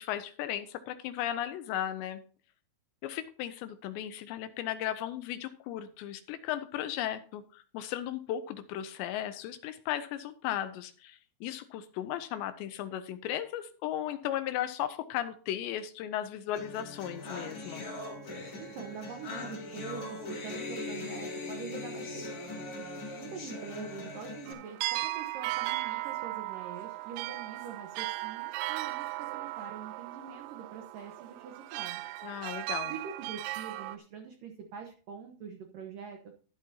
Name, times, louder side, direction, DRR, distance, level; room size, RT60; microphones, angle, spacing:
voice 1, 0.0-2.2 3.0-17.8 32.2-32.9, left 11 dB, 80° left, 10 dB, 2.8 m, -36 dB
sound 1, 16.5-24.5, left 2 dB, 35° left, 3.1 m, -40 dB
voice 2, 18.6-22.7 23.2-32.1 32.8-36.2, right 6 dB, 70° right, 3 dB, 2.2 m, -44 dB
sound 2, 24.5-34.0, right 17 dB, 90° right, 3.1 m, -37 dB
13.0 x 11.0 x 2.8 m, 0.40 s
omnidirectional pair, 5.3 m